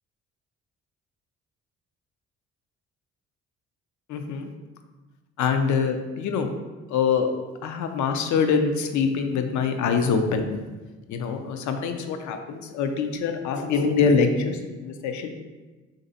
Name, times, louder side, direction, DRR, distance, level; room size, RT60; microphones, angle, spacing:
voice 1, 4.1-4.5 5.4-6.5 6.9-7.3 7.6-10.5 11.1-15.3, left 5 dB, 70° left, 6 dB, 0.5 m, -24 dB
3.3 x 2.6 x 3.9 m, 1.2 s
cardioid pair, 90°, 30 cm